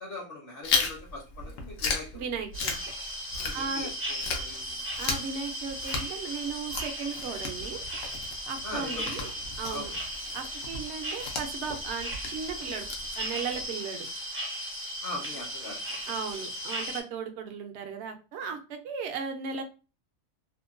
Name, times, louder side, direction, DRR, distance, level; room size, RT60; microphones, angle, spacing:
voice 1, 0.0-2.2 3.3-4.8 8.6-9.3 9.7-9.9 15.0-16.1, left 2 dB, 50° left, -1 dB, 0.9 m, -41 dB
Chewing mastication, 0.6-3.9 4.2-13.6, left 4 dB, 80° left, 1.0 m, -35 dB
voice 2, 2.1-2.8 3.5-3.9 5.0-7.8 8.5-9.3 9.6-9.9 10.3-12.9 13.2-14.1 16.1-19.6, right 5 dB, 65° right, 6 dB, 0.8 m, -36 dB
sound 1, 2.5-17.0, equal, 20° right, 0.3 m, -36 dB
2.8 x 2.1 x 2.4 m, 0.32 s
omnidirectional pair, 1.4 m